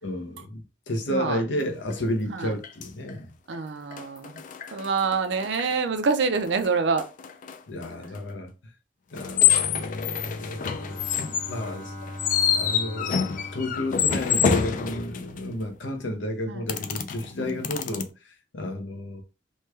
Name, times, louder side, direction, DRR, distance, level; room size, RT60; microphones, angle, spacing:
voice 1, 0.0-3.3 7.7-8.5 9.1-11.1 11.4-11.9 12.5-13.2 13.5-19.2, left 1 dB, 75° left, 0.7 m, -32 dB
voice 2, 1.1-1.4 2.3-2.5 3.5-4.4 4.7-7.1 16.5-16.6 17.5-17.6, right 4 dB, 65° right, 0.5 m, -26 dB
sound 1, 1.9-2.0 2.6-3.1 3.5-3.6 3.9-5.8 6.0-8.2 9.1-15.6 16.7-18.0, left 8 dB, 45° left, 0.3 m, -27 dB
Bowed string instrument, 10.1-14.9, left 1 dB, 5° left, 0.7 m, -41 dB
3.2 x 2.2 x 3.2 m
head